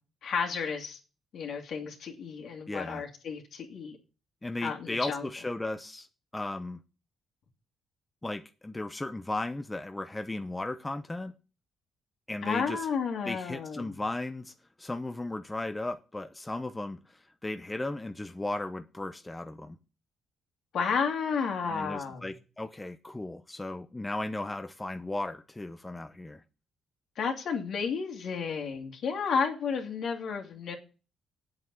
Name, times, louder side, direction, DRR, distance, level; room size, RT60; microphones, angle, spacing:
voice 1, 0.2-1.0 1.3-4.0 4.6-5.3 12.4-14.0 20.7-22.3 27.2-30.8, left 6 dB, 65° left, 2.7 m, -32 dB
voice 2, 2.7-3.0 4.4-6.1 6.3-6.8 8.2-11.3 12.3-12.9 13.3-14.5 14.8-17.0 17.4-19.8 21.7-26.4, left 2 dB, 15° left, 0.8 m, -35 dB
8.4 x 7.8 x 8.2 m
cardioid pair, 90°, 0 cm